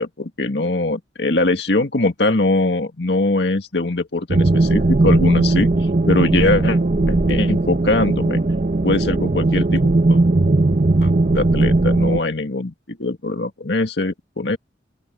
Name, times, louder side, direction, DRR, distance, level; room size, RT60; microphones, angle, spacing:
voice 1, 0.0-6.8 7.1-8.4 8.8-9.8 10.1-10.2 11.0-14.6, left 2 dB, 70° left, 1.9 m, -22 dB
sound 1, 4.3-12.2, right 2 dB, 45° right, 0.8 m, -17 dB
open air
head